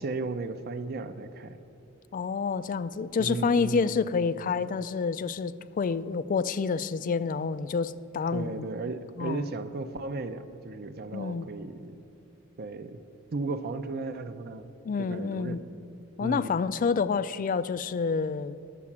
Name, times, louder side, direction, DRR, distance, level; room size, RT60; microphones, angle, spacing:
voice 1, 0.0-1.6 3.2-4.1 8.3-12.0 12.6-13.0 13.3-14.7 15.0-15.6 16.2-16.6, right 3 dB, 50° right, 9 dB, 0.5 m, -35 dB
voice 2, 2.1-8.7 9.2-9.4 11.1-11.5 14.8-15.6 16.2-18.6, left 5 dB, 40° left, 16 dB, 0.3 m, -28 dB
11.0 x 7.5 x 7.2 m, 2.7 s
head